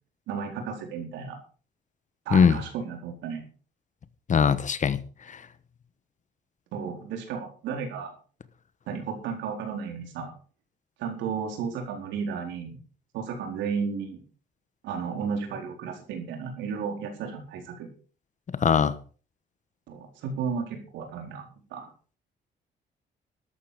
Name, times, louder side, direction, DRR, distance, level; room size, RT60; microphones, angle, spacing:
voice 1, 0.3-1.4 2.3-3.4 6.7-8.1 8.9-10.3 11.0-12.8 13.1-14.2 14.8-17.9 19.9-21.4 21.7-21.9, right 6 dB, 90° right, 4.3 m, -33 dB
voice 2, 4.3-5.0 5.3-5.4 18.6-19.0, left 6 dB, 45° left, 1.3 m, -21 dB
13.5 x 11.5 x 5.0 m
cardioid pair, 90°, 18 cm